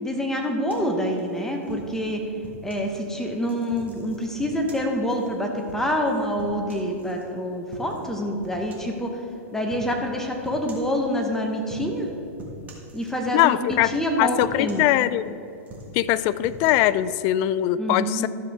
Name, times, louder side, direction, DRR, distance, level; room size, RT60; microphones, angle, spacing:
voice 1, 0.0-2.2 2.6-9.2 9.5-12.1 12.9-14.8 17.8-18.3, equal, 5° left, 2 dB, 0.9 m, -26 dB
sound 1, 0.7-2.9 3.4-7.2 7.7-8.1 8.4-9.0 9.7-9.9 10.4-11.0 11.6-12.1 12.4-13.4 13.7-14.1 14.4-15.3 15.6-16.7, equal, 20° right, 1.7 m, -43 dB
voice 2, 13.3-15.3 15.9-18.3, left 13 dB, 40° left, 16 dB, 0.3 m, -22 dB
13.0 x 7.0 x 3.5 m, 2.8 s
hypercardioid pair, 135°, 8 cm